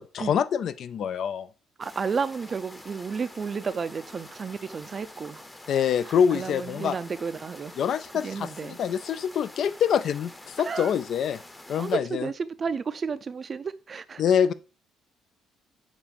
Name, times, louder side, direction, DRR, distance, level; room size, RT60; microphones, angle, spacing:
voice 1, 0.0-1.5 5.7-6.9 7.8-11.4 11.7-12.2 14.2-14.5, left 8 dB, 60° left, 0.4 m, -25 dB
sound 1, 1.8-12.0, left 1 dB, 15° left, 0.8 m, -47 dB
voice 2, 1.8-5.7 6.1-7.8 8.1-8.8 10.6-10.9 11.8-14.2, right 5 dB, 40° right, 0.4 m, -32 dB
7.2 x 2.5 x 5.2 m
cardioid pair, 90°, 0 cm